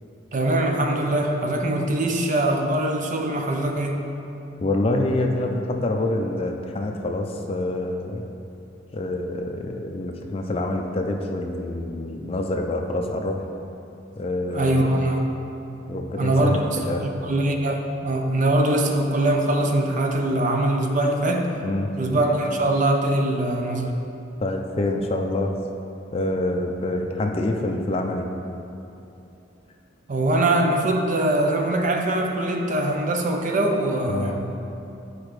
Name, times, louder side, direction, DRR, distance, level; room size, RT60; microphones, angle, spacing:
voice 1, 0.3-4.0 14.5-15.3 16.2-21.5 22.0-24.0 30.1-34.5, right 1 dB, 45° right, 2 dB, 0.5 m, -22 dB
voice 2, 4.6-8.2 8.9-13.4 14.2-14.9 15.9-17.0 21.6-21.9 24.4-25.5 26.1-28.3 34.1-34.4, left 2 dB, 30° left, 3 dB, 0.4 m, -26 dB
8.5 x 4.8 x 3.2 m, 2.8 s
head